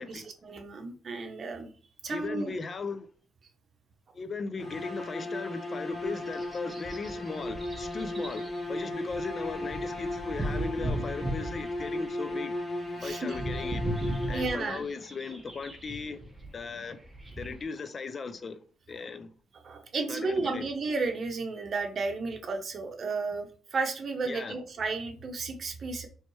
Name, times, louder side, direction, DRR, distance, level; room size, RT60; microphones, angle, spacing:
voice 1, 0.0-1.7 2.0-2.5 13.0-13.4 14.3-14.8 19.6-26.1, right 4 dB, 45° right, 0.9 m, -33 dB
voice 2, 2.1-3.1 4.1-12.5 13.0-13.9 14.3-16.2 16.5-17.0 17.4-18.6 18.9-19.3 20.1-20.7 24.3-24.6, left 4 dB, 40° left, 0.4 m, -37 dB
sound 1, 4.6-14.8, left 1 dB, 20° left, 1.1 m, -36 dB
sound 2, 5.9-17.6, right 1 dB, 20° right, 1.0 m, -38 dB
4.2 x 3.1 x 3.1 m
cardioid pair, 90°, 0 cm